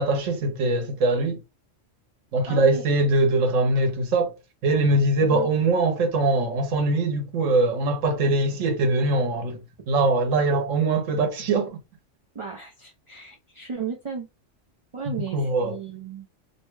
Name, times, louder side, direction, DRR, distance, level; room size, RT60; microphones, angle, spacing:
voice 1, 0.0-1.4 2.3-4.4 4.6-9.6 9.9-11.8 15.3-15.8, right 2 dB, 90° right, 1.1 m, -22 dB
voice 2, 2.5-2.9 5.2-5.5 12.3-14.3 14.9-16.3, right 6 dB, 45° right, 0.4 m, -35 dB
2.8 x 2.2 x 3.1 m
omnidirectional pair, 1.3 m